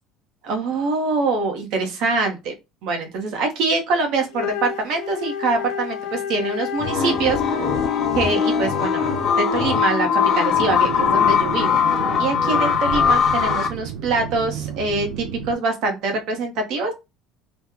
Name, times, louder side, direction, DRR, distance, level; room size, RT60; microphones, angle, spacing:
voice 1, 0.4-2.5 2.8-7.4 8.1-9.1 9.4-11.8 12.2-16.9, right 3 dB, 55° right, 4 dB, 0.7 m, -24 dB
Wind instrument woodwind instrument, 4.3-9.5, left 8 dB, 85° left, 0.4 m, -30 dB
sound 1, 6.8-13.7, left 7 dB, 35° left, 0.6 m, -20 dB
sound 2, 10.6-15.6, right 8 dB, 90° right, 0.5 m, -32 dB
2.9 x 2.0 x 3.5 m, 0.25 s
cardioid pair, 175°, 0 cm